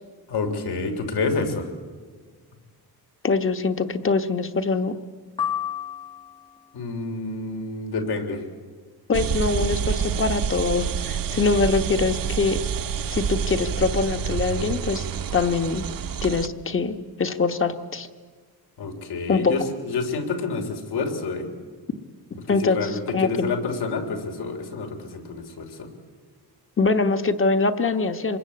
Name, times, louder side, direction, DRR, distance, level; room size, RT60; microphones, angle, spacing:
voice 1, 0.3-1.7 6.7-8.4 18.8-21.5 22.5-25.9, left 4 dB, 80° left, 5 dB, 3.6 m, -28 dB
voice 2, 3.2-4.9 9.1-12.6 13.1-15.1 15.3-15.8 16.2-18.1 19.3-19.5 22.5-23.5 26.8-28.4, left 4 dB, 30° left, 8 dB, 1.2 m, -23 dB
sound 1, 5.4-6.7, left 9 dB, 15° left, 0.8 m, -30 dB
sound 2, 9.1-16.5, right 7 dB, 60° right, 1.0 m, -28 dB
26.0 x 21.5 x 8.6 m, 1.5 s
wide cardioid pair, 165°, 39 cm